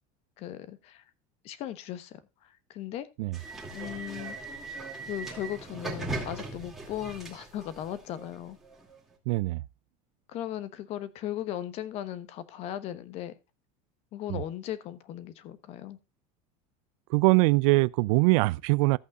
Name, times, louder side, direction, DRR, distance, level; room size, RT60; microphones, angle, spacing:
voice 1, 0.4-1.0 1.4-3.1 3.7-4.4 5.0-8.6 10.3-13.4 14.1-16.0, left 12 dB, 35° left, 1.0 m, -37 dB
sound 1, 3.3-9.0, right 2 dB, ahead, 2.4 m, -39 dB
voice 2, 9.3-9.6 14.3-14.4 17.1-19.0, right 24 dB, 65° right, 0.4 m, -23 dB
14.5 x 8.3 x 2.4 m
cardioid pair, 180°, 18 cm